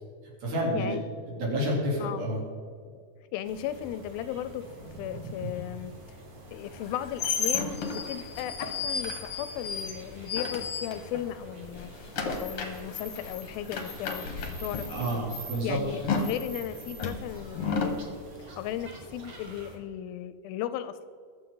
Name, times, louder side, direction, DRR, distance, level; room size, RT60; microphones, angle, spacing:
voice 1, 0.4-1.0 1.3-2.4 14.9-15.8, equal, 70° right, -4 dB, 5.1 m, -29 dB
voice 2, 3.3-5.9 6.5-12.1 12.4-15.2 15.6-21.1, left 11 dB, 80° left, 12 dB, 2.3 m, -36 dB
sound 1, 3.4-19.8, right 1 dB, 40° right, 2.2 m, -48 dB
sound 2, 4.3-10.4, right 1 dB, 85° right, 3.8 m, -47 dB
sound 3, 6.7-11.4 11.6-18.0, left 5 dB, 60° left, 1.6 m, -33 dB
21.5 x 7.4 x 3.9 m, 2.2 s
omnidirectional pair, 4.4 m